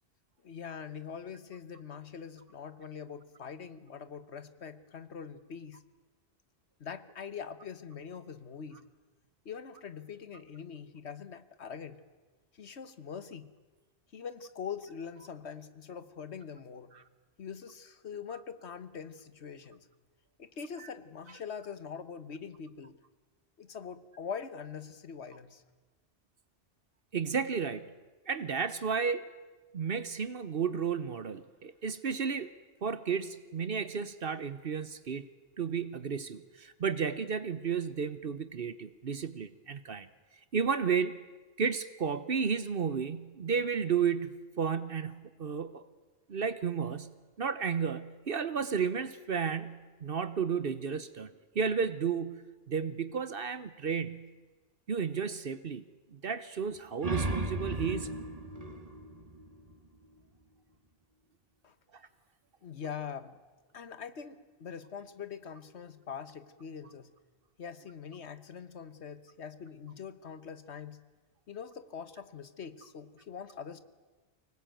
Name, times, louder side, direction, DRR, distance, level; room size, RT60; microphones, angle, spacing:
voice 1, 0.4-5.8 6.8-8.8 9.4-12.0 12.5-13.5 14.1-16.9 17.4-19.9 20.4-23.0 23.6-25.6 61.6-61.7 62.6-63.4 63.7-67.1 67.6-71.0 71.5-73.8, left 7 dB, 85° left, 13 dB, 1.5 m, -43 dB
voice 2, 27.1-27.9 28.3-29.2 29.7-32.5 32.8-35.3 35.6-40.1 40.5-41.2 41.6-45.8 46.3-47.1 47.4-54.3 54.9-55.8 56.1-58.1, right 6 dB, 60° right, 14 dB, 1.1 m, -32 dB
sound 1, 56.8-60.2, right 1 dB, 35° right, 1.8 m, -36 dB
24.5 x 19.5 x 9.2 m, 1.3 s
omnidirectional pair, 1.1 m